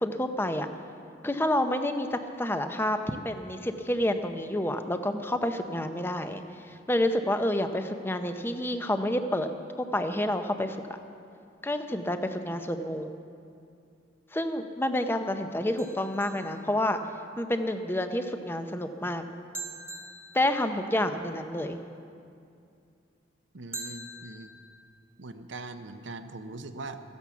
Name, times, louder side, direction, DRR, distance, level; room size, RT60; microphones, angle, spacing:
voice 1, 0.0-0.7 1.2-9.5 9.8-10.8 11.6-13.1 14.3-17.0 17.4-19.2 20.3-21.8, left 1 dB, 10° left, 7 dB, 0.7 m, -29 dB
sound 1, 15.8-17.3 19.5-21.2 23.7-24.8, right 2 dB, 10° right, 1.4 m, -43 dB
voice 2, 23.5-24.5 25.2-27.0, right 2 dB, 70° right, 9 dB, 0.8 m, -41 dB
15.0 x 11.0 x 7.0 m, 2.5 s
head